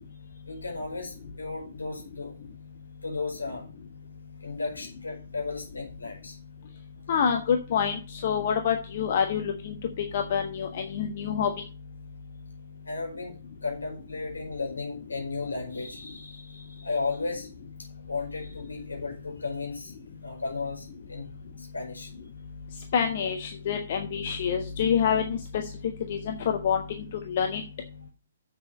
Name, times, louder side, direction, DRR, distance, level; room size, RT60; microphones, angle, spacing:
voice 1, 0.5-2.3 3.0-3.7 4.4-6.4 12.8-17.5 18.1-19.9 20.2-21.3 21.6-22.1, left 3 dB, 75° left, 1 dB, 4.7 m, -34 dB
voice 2, 7.1-11.5 22.9-25.7 26.1-27.6, left 7 dB, 45° left, 4 dB, 1.2 m, -27 dB
7.6 x 6.9 x 6.8 m, 0.35 s
figure-of-eight pair, 125°, 0 cm